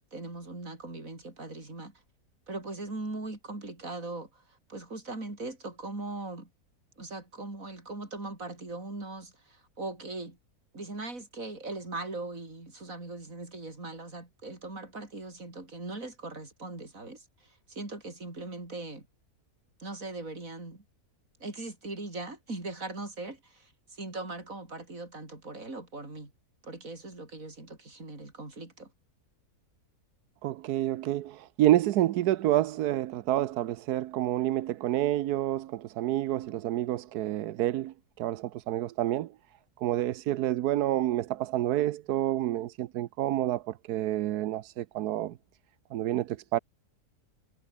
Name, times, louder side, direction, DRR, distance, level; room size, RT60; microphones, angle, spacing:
voice 1, 0.0-1.9 2.5-6.5 7.0-10.4 10.7-19.1 19.8-20.8 21.4-26.3 26.6-28.9, right 2 dB, 60° right, 5.8 m, -40 dB
voice 2, 30.4-39.3 39.8-45.3 45.9-46.6, right 13 dB, 90° right, 1.2 m, -28 dB
omnidirectional pair, 1.6 m